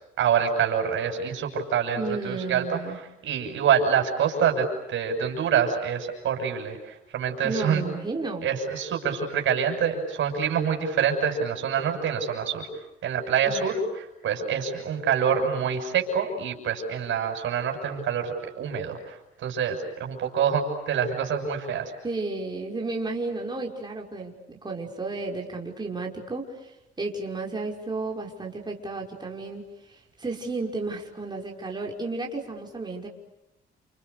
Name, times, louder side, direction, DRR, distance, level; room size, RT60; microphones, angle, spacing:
voice 1, 0.2-2.8 3.2-7.8 8.4-12.7 13.0-21.9, right 7 dB, 75° right, 4 dB, 6.8 m, -26 dB
voice 2, 2.0-3.0 7.4-8.5 13.5-13.6 22.0-33.1, right 3 dB, 20° right, 0 dB, 5.5 m, -33 dB
29.5 x 28.5 x 6.9 m, 0.88 s
cardioid pair, 90°, 20 cm